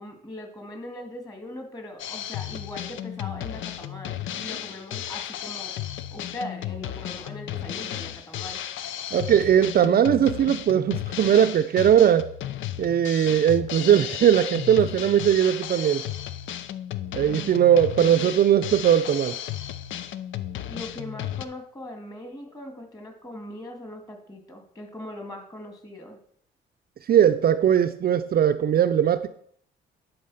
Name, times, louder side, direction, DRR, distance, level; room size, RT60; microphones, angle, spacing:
voice 1, 0.0-5.7 6.1-8.6 17.3-17.7 20.7-26.2, left 1 dB, 20° left, 3 dB, 2.4 m, -40 dB
Drum kit, 2.0-21.4, left 11 dB, 75° left, 0.6 m, -34 dB
voice 2, 9.1-12.3 12.8-16.0 17.1-19.3 27.1-29.3, right 9 dB, 50° right, 8 dB, 0.5 m, -19 dB
11.0 x 4.1 x 5.7 m, 0.63 s
cardioid pair, 90°, 20 cm